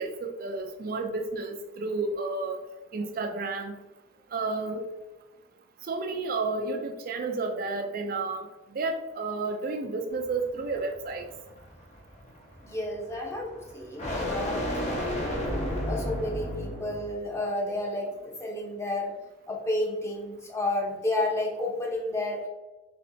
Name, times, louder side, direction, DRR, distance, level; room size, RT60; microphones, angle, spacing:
voice 1, 0.0-2.6 2.9-3.7 4.3-4.8 5.9-8.5 8.7-11.3, right 3 dB, 50° right, 4 dB, 0.4 m, -31 dB
sound 1, 10.1-17.2, equal, 40° left, 0.9 m, -34 dB
voice 2, 12.6-15.2 15.8-19.1 19.5-22.5, left 1 dB, 15° left, -1 dB, 0.8 m, -31 dB
4.4 x 3.1 x 2.6 m, 1.1 s
head